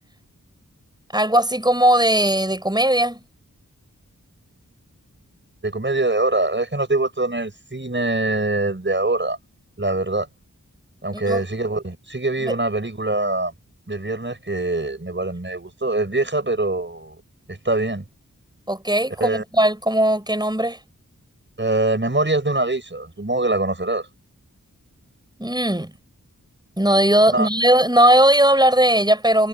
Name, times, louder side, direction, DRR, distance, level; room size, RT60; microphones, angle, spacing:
voice 1, 1.1-3.2 11.1-11.4 12.4-12.5 18.7-20.8 25.4-25.9 26.8-29.5, right 1 dB, 10° right, 6.7 m, -18 dB
voice 2, 5.6-9.4 9.8-10.3 11.0-13.5 13.9-17.2 17.5-18.0 19.2-19.4 21.6-24.1 27.3-27.5, right 2 dB, 35° right, 6.2 m, -23 dB
wide cardioid pair, 70°, 33 cm